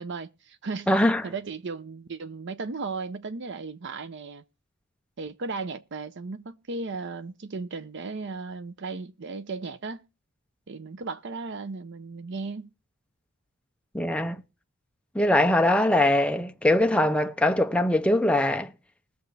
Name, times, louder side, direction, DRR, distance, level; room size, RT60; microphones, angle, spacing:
voice 1, 0.0-0.9 1.2-4.4 5.2-10.0 10.7-12.7, right 4 dB, 55° right, 0.6 m, -35 dB
voice 2, 0.9-1.3 13.9-14.4 15.1-18.7, left 1 dB, 5° left, 0.6 m, -22 dB
21.0 x 7.1 x 3.3 m
head